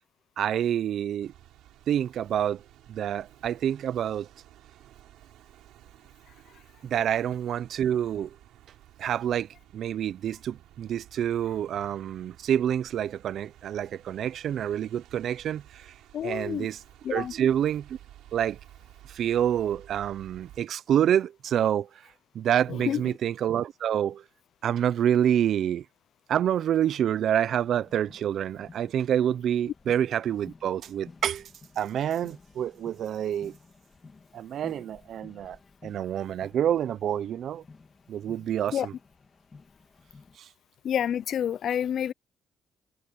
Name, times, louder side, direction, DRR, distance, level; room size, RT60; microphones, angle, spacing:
voice 1, 0.4-1.3 1.9-2.6 2.9-4.3 6.8-8.3 9.0-15.9 16.2-16.8 17.1-18.0 18.3-18.6 19.1-22.0 22.3-24.2 24.6-25.8 26.3-31.5 31.8-33.5 34.3-35.6 35.8-37.6 38.1-38.9 40.4-40.5, right 10 dB, 70° right, 0.7 m, -27 dB
sound 1, 1.2-20.6, right 13 dB, 85° right, 5.0 m, -54 dB
voice 2, 16.1-16.7 17.0-17.3 22.7-23.0 38.7-38.9 40.8-42.1, left 9 dB, 65° left, 0.5 m, -28 dB
sound 2, 27.5-40.4, left 4 dB, 30° left, 2.8 m, -53 dB
cardioid pair, 90°, 0 cm